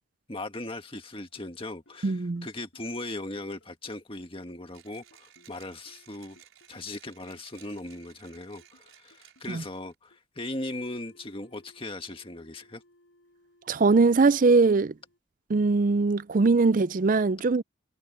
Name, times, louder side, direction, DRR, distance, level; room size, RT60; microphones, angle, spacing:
voice 1, 0.3-6.4 6.7-12.8, left 2 dB, 25° left, 1.8 m, -38 dB
sound 1, 1.2-15.2, left 1 dB, 70° left, 7.2 m, -62 dB
voice 2, 2.0-2.5 9.5-9.6 13.7-14.9 15.5-17.6, right 3 dB, 40° right, 0.4 m, -21 dB
Mechanisms, 4.7-9.9, right 10 dB, 85° right, 4.8 m, -57 dB
head